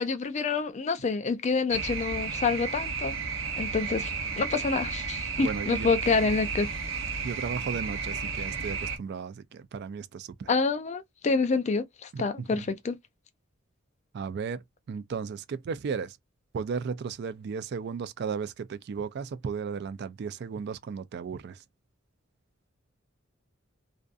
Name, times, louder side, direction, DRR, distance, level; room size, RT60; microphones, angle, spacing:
voice 1, 0.0-3.2 3.6-6.7 10.5-13.0, left 4 dB, 35° left, 0.4 m, -27 dB
sound 1, 1.7-9.0, right 5 dB, 75° right, 0.7 m, -33 dB
voice 2, 5.4-5.9 7.2-10.5 12.1-12.7 14.1-16.2 16.5-21.6, right 6 dB, 55° right, 0.3 m, -35 dB
2.5 x 2.4 x 2.3 m
head